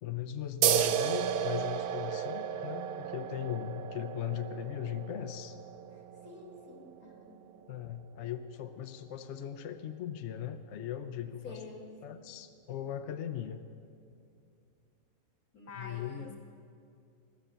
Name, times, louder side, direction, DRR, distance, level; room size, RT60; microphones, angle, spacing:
voice 1, 0.0-5.6 7.7-11.6 12.0-13.6 15.8-16.3, left 10 dB, 60° left, 9 dB, 0.8 m, -39 dB
sound 1, 0.6-7.7, right 9 dB, 85° right, 1.2 m, -33 dB
voice 2, 6.2-7.3 11.4-11.9 15.5-16.4, left 4 dB, 80° left, 2 dB, 2.5 m, -47 dB
16.0 x 11.5 x 6.8 m, 2.4 s
omnidirectional pair, 1.5 m